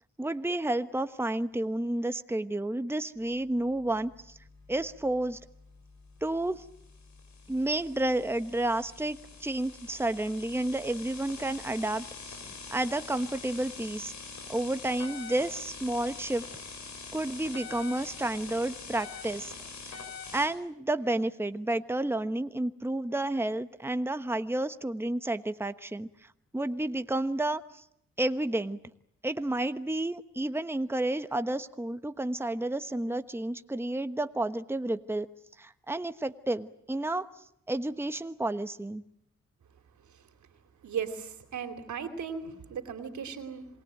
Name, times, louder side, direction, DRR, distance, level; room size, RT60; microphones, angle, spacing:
voice 1, 0.2-4.4 4.7-5.4 6.2-6.6 7.5-14.1 14.5-16.5 17.1-19.5 19.9-20.0 20.3-26.1 26.5-27.8 28.2-28.8 29.2-35.3 35.6-37.3 37.7-39.0, right 1 dB, 10° right, 11 dB, 1.1 m, -31 dB
sound 1, 3.6-20.5, left 4 dB, 75° left, 6.8 m, -45 dB
voice 2, 40.0-40.3 40.8-43.7, right 6 dB, 80° right, 8 dB, 3.0 m, -37 dB
27.0 x 20.5 x 9.1 m, 0.76 s
supercardioid pair, 50°, 29 cm